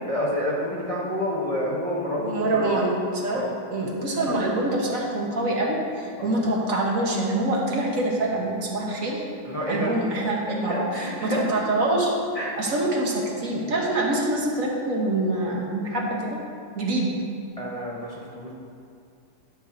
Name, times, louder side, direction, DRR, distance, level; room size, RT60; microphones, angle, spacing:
voice 1, 0.1-2.7 3.3-3.5 4.3-4.4 6.2-6.3 9.4-9.9 10.5-11.6 12.3-12.5 17.6-18.5, equal, 25° left, -6 dB, 1.0 m, -28 dB
voice 2, 2.1-3.4 3.7-9.2 9.7-12.1 12.6-16.4 16.7-17.1, right 2 dB, 60° right, -2 dB, 1.5 m, -25 dB
10.5 x 4.4 x 6.4 m, 2.4 s
omnidirectional pair, 1.7 m